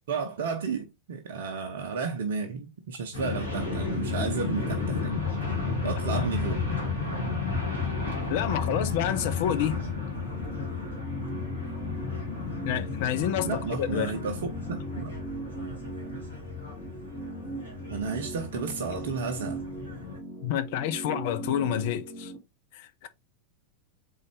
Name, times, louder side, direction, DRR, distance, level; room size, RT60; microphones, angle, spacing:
voice 1, 0.1-5.1 5.8-6.6 13.4-14.4 14.7-15.1 17.9-19.6, right 5 dB, 55° right, 0.6 m, -32 dB
sound 1, 3.1-20.2, left 4 dB, 85° left, 1.9 m, -33 dB
voice 2, 8.3-9.8 12.6-14.1 20.4-22.3 22.7-23.1, left 10 dB, 50° left, 0.6 m, -29 dB
sound 2, 9.9-22.4, right 3 dB, 25° left, 2.1 m, -40 dB
3.9 x 3.8 x 3.2 m
figure-of-eight pair, 90°, 0 cm